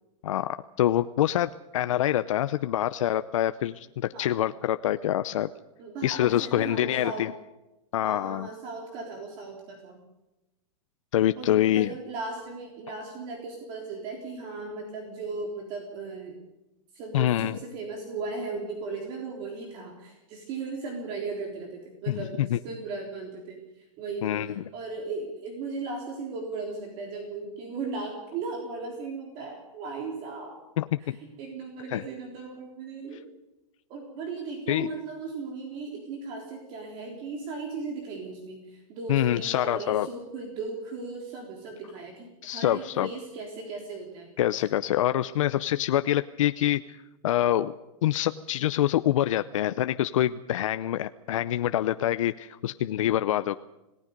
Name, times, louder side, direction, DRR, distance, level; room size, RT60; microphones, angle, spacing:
voice 1, 0.2-5.5 6.0-7.3 7.9-8.5 11.1-11.9 17.1-17.6 22.1-22.6 24.2-24.5 30.8-31.2 31.9-32.0 34.7-34.9 39.1-40.1 42.4-43.1 44.4-46.8 47.2-47.7 48.0-53.6, left 12 dB, 65° left, 11 dB, 0.7 m, -25 dB
voice 2, 5.8-7.4 8.0-10.0 11.4-16.4 16.9-30.6 31.0-33.2 33.9-44.3, right 3 dB, 30° right, 1 dB, 3.6 m, -37 dB
28.5 x 18.5 x 5.3 m, 0.98 s
supercardioid pair, 175°, 18 cm